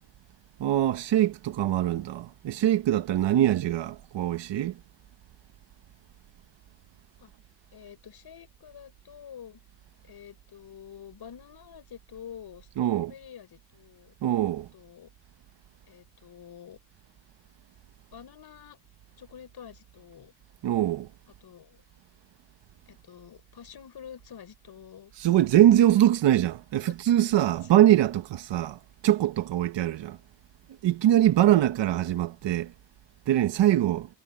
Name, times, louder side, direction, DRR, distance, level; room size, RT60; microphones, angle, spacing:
voice 1, 0.6-4.7 12.8-13.1 14.2-14.7 20.6-21.1 25.2-28.8 29.0-30.2 30.8-32.7 33.3-34.1, right 12 dB, 75° right, 1.2 m, -23 dB
voice 2, 7.7-9.6 10.0-14.1 14.7-15.1 15.9-16.8 18.1-18.8 19.2-20.3 21.4-21.8 22.9-25.1 26.9-27.0 27.5-27.7, left 8 dB, 60° left, 6.0 m, -47 dB
cardioid pair, 95°, 44 cm